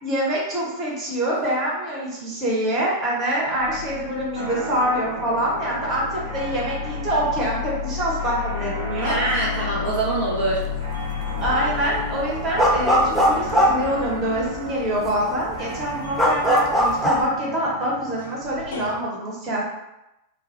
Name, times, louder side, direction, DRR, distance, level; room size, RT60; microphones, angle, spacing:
voice 1, 0.0-9.2 11.4-19.6, right 1 dB, 30° right, -4 dB, 0.9 m, -25 dB
sound 1, 1.9-2.7 3.1-19.0, left 9 dB, 70° left, 0.3 m, -34 dB
sound 2, 4.3-18.3, right 2 dB, 80° right, 0.8 m, -35 dB
voice 2, 9.0-10.6, right 2 dB, 55° right, -6 dB, 0.5 m, -24 dB
sound 3, 10.7-11.1 11.4-14.6 15.0-15.1 15.4-17.3, equal, ahead, 0.5 m, -20 dB
2.2 x 2.0 x 3.0 m, 0.92 s
figure-of-eight pair, 90°, 0 cm